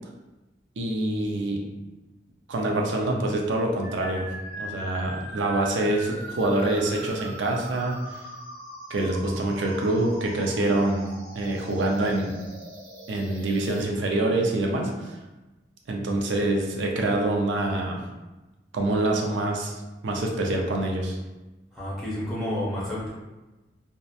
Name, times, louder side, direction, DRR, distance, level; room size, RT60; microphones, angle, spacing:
voice 1, 0.8-1.6 2.5-8.2 8.9-12.4 13.1-15.2 15.9-18.1 18.7-19.8 20.0-21.2, right 2 dB, 80° right, 1 dB, 0.4 m, -26 dB
sound 1, 3.8-13.8, right 1 dB, 50° right, 0.7 m, -41 dB
voice 2, 21.7-23.1, left 1 dB, ahead, -10 dB, 0.6 m, -30 dB
2.8 x 2.1 x 2.3 m, 1.1 s
head